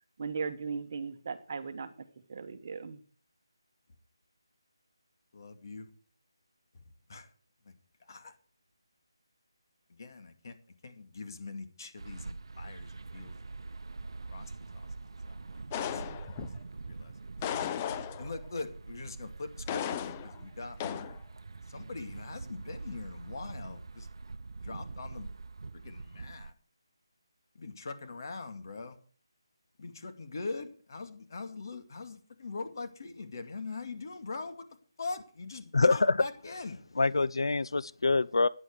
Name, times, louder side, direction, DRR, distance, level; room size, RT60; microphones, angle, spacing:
voice 1, 0.2-1.9 2.3-3.0, right 5 dB, 40° right, 10 dB, 1.3 m, -37 dB
voice 2, 5.3-5.9 7.1-7.3 7.7-7.8 8.1-8.3 9.9-10.6 10.8-13.3 14.3-14.9 15.3-16.2 16.9-17.1 17.5-17.6 18.2-21.2 21.7-24.1 24.6-25.3 25.7-26.5 27.5-29.0 29.8-34.6 35.0-36.8, left 3 dB, 45° left, 7 dB, 2.3 m, -42 dB
sound 1, 12.0-26.5, right 3 dB, 70° right, 0.7 m, -44 dB
sound 2, 15.7-16.6 17.4-18.5 19.7-20.4 20.8-21.2, left 10 dB, 15° left, 0.5 m, -35 dB
voice 3, 35.7-36.2 37.0-38.5, left 3 dB, 75° left, 19 dB, 0.5 m, -25 dB
14.5 x 9.9 x 4.8 m, 0.42 s
figure-of-eight pair, 170°, 3 cm